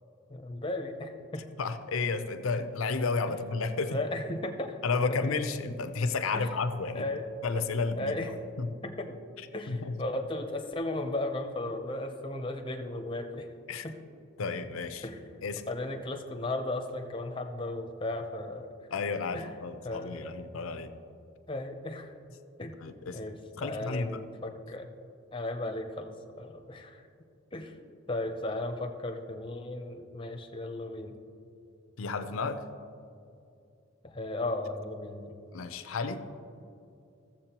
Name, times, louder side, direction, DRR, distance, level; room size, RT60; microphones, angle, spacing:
voice 1, 0.3-1.4 3.3-3.4 3.9-4.8 5.1-5.4 6.3-6.5 6.9-7.3 8.0-8.3 8.8-9.1 9.5-13.5 13.8-14.0 15.0-15.2 15.7-18.7 19.3-19.5 19.8-20.3 21.5-22.1 22.6-22.7 23.1-24.9 25.3-27.0 27.5-27.8 28.1-31.1 34.0-35.3, left 2 dB, 25° left, 4 dB, 0.6 m, -35 dB
voice 2, 1.6-4.0 4.8-7.1 7.4-8.1 8.6-8.7 9.7-9.9 13.7-13.9 14.4-15.1 15.4-15.6 18.9-20.9 22.8-23.2 23.6-24.2 32.0-32.6 35.5-36.3, left 4 dB, 85° left, 10 dB, 0.6 m, -32 dB
15.0 x 7.4 x 2.9 m, 2.6 s
head